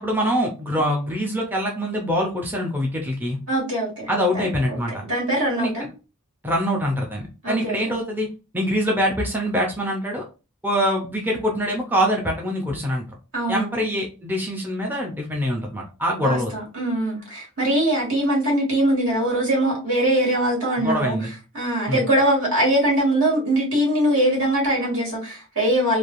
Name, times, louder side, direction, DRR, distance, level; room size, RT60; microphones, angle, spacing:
voice 1, 0.0-3.4 4.1-5.0 5.6-5.7 6.4-8.3 8.5-10.2 10.6-13.0 13.5-16.5 20.8-21.3 21.9-22.0, equal, 10° right, -1 dB, 0.5 m, -24 dB
voice 2, 3.5-4.1 4.3-5.9 7.4-7.9 13.3-13.7 16.2-21.2 21.5-26.0, right 1 dB, 65° right, -3 dB, 1.7 m, -22 dB
3.2 x 2.5 x 2.4 m, 0.31 s
head